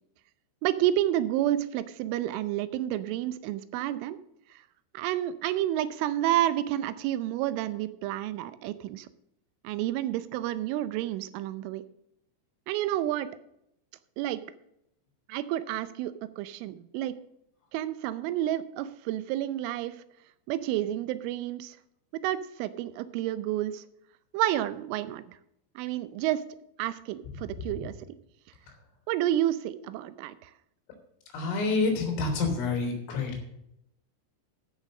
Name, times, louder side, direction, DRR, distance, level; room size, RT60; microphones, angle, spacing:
voice 1, 0.6-4.2 4.5-4.6 4.9-9.1 9.6-11.8 12.7-13.3 14.2-14.4 15.3-17.1 17.7-20.0 20.5-21.8 22.1-23.8 24.3-25.4 25.8-26.4 26.8-27.9 29.1-30.5, right 13 dB, 85° right, 14 dB, 3.1 m, -30 dB
voice 2, 31.3-33.4, left 3 dB, 85° left, 2 dB, 5.6 m, -28 dB
14.0 x 6.3 x 6.4 m, 0.79 s
omnidirectional pair, 5.7 m